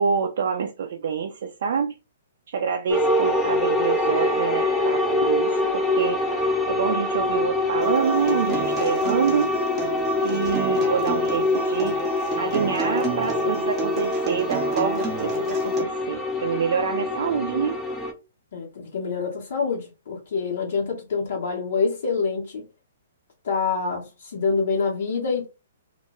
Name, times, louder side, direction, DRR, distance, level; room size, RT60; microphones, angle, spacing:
voice 1, 0.0-1.9 2.5-9.5 10.2-12.0 12.4-17.8, right 6 dB, 60° right, 0.4 m, -26 dB
sound 1, 2.9-18.1, left 2 dB, 10° left, 0.5 m, -25 dB
Acoustic guitar, 7.8-15.8, right 4 dB, 25° right, 0.7 m, -30 dB
voice 2, 18.5-22.7 23.4-25.5, left 4 dB, 65° left, 0.8 m, -26 dB
2.1 x 2.1 x 2.9 m
hypercardioid pair, 125°, 0 cm